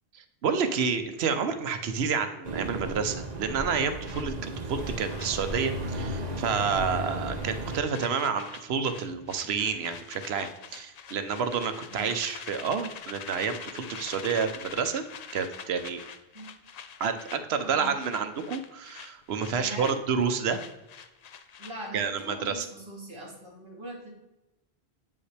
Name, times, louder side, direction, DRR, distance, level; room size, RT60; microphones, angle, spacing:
voice 1, 0.1-15.0 15.3-16.0 17.0-20.6 21.9-22.7, right 6 dB, 80° right, 9 dB, 0.9 m, -29 dB
sound 1, 2.4-7.8, right 1 dB, 45° right, 1.0 m, -34 dB
sound 2, 4.0-6.3 6.6-6.8 7.1-22.0, left 7 dB, 55° left, 0.5 m, -45 dB
voice 2, 17.6-17.9 19.6-19.9 21.6-24.1, right 1 dB, 25° right, -4 dB, 2.4 m, -41 dB
8.7 x 5.5 x 3.3 m, 0.96 s
omnidirectional pair, 1.1 m